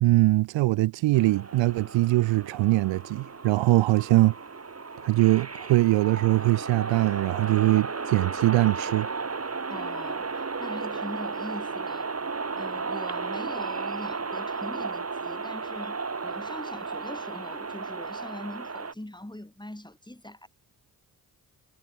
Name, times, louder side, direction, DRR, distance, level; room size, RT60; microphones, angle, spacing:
voice 1, 0.0-4.3 5.0-9.1, right 19 dB, 65° right, 0.7 m, -22 dB
sound 1, 1.1-18.9, right 4 dB, 30° right, 2.8 m, -34 dB
voice 2, 9.7-20.5, left 1 dB, 10° left, 7.5 m, -42 dB
hypercardioid pair, 45°, 48 cm